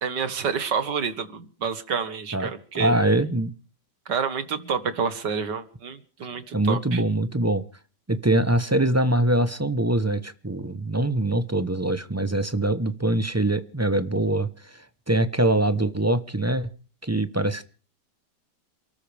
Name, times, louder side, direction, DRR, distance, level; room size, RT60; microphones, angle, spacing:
voice 1, 0.0-2.9 4.1-7.0, right 6 dB, 75° right, 11 dB, 2.2 m, -28 dB
voice 2, 2.7-3.5 6.5-7.6 8.1-16.7 17.0-17.6, right 1 dB, 15° right, 12 dB, 0.5 m, -23 dB
29.0 x 13.5 x 3.4 m, 0.38 s
omnidirectional pair, 1.9 m